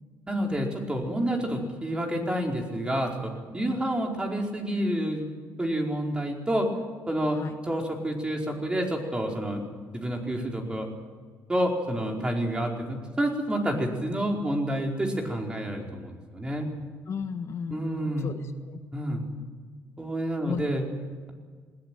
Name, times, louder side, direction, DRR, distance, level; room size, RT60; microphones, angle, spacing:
voice 1, 0.3-5.3 5.6-6.7 7.1-7.4 7.7-9.6 9.9-10.9 11.5-16.7 17.7-18.3 18.9-19.2 20.0-20.8, right 1 dB, 15° right, 1 dB, 4.7 m, -29 dB
voice 2, 17.1-18.8 20.4-20.7, left 6 dB, 50° left, 7 dB, 1.4 m, -35 dB
20.5 x 17.5 x 9.3 m, 1.5 s
cardioid pair, 105°, 6 cm